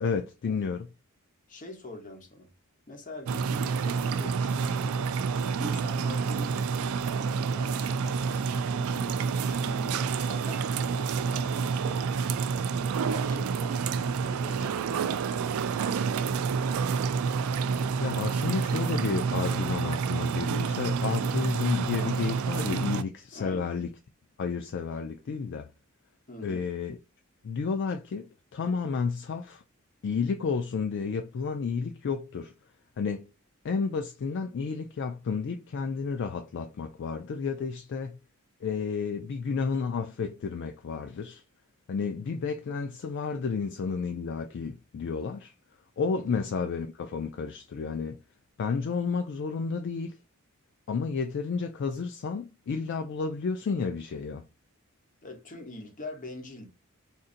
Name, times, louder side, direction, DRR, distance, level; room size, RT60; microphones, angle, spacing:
voice 1, 0.0-0.9 18.0-23.9 24.4-25.7 26.4-27.0 27.4-29.6 30.0-32.5 33.0-33.3 33.6-38.2 38.6-41.4 41.9-45.5 46.0-48.2 48.6-50.2 50.9-54.4, left 5 dB, 55° left, 0.4 m, -31 dB
voice 2, 1.5-2.5 2.9-12.1 12.9-13.9 14.2-15.5 23.3-23.8 26.3-26.7 46.1-46.4 55.2-56.7, left 2 dB, 40° left, 0.9 m, -44 dB
sound 1, 3.3-23.0, right 5 dB, 80° right, 0.4 m, -28 dB
3.8 x 2.6 x 2.5 m
head